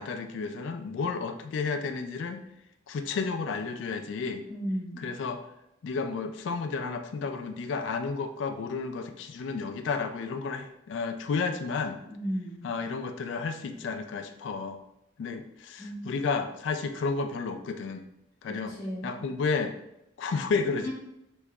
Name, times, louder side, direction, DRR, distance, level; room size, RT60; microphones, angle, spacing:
voice 1, 0.0-2.4 2.9-4.5 5.0-5.4 5.8-12.0 12.6-14.8 15.2-18.0 18.4-18.8 19.0-19.7 20.2-20.9, left 4 dB, 70° left, 6 dB, 0.3 m, -32 dB
voice 2, 4.5-5.0 12.1-12.7 15.8-16.1 18.7-19.2 20.8-20.9, equal, 20° left, -8 dB, 0.9 m, -34 dB
3.6 x 3.0 x 2.2 m, 0.85 s
head